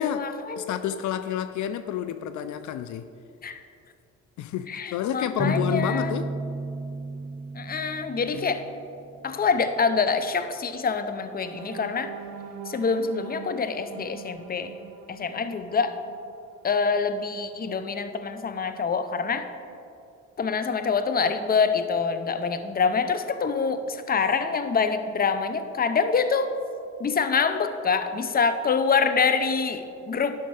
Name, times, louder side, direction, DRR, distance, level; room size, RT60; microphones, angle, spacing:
voice 1, 0.0-0.8 3.4-3.6 4.7-6.1 7.5-8.7 9.2-12.1 12.7-14.7 15.1-16.0 16.6-19.5 20.4-26.5 27.0-30.4, left 5 dB, 30° left, 10 dB, 0.7 m, -26 dB
voice 2, 0.6-3.1 4.4-6.3 8.3-8.5, left 10 dB, 70° left, 11 dB, 0.5 m, -29 dB
sound 1, 5.4-9.1, right 3 dB, 25° right, 0.8 m, -33 dB
sound 2, 11.2-17.1 17.6-17.8 18.2-18.4, right 8 dB, 75° right, 0.7 m, -44 dB
11.5 x 5.7 x 4.8 m, 2.5 s
cardioid pair, 90°, 30 cm